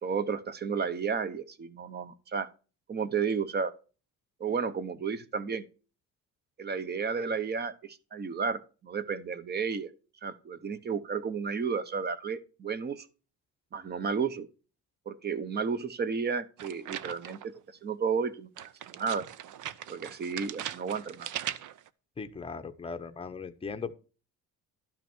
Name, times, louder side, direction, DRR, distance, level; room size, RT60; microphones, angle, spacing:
voice 1, 0.0-2.5 2.9-3.7 4.4-5.6 6.6-9.9 10.2-13.1 13.7-14.5 15.1-17.5 17.8-19.2 19.9-21.3, right 5 dB, 30° right, 0.8 m, -32 dB
sound 1, 16.6-17.6 18.6-21.9, right 11 dB, 60° right, 0.6 m, -40 dB
voice 2, 22.2-23.9, left 5 dB, 15° left, 0.8 m, -38 dB
12.0 x 5.9 x 4.4 m
cardioid pair, 145°, 35 cm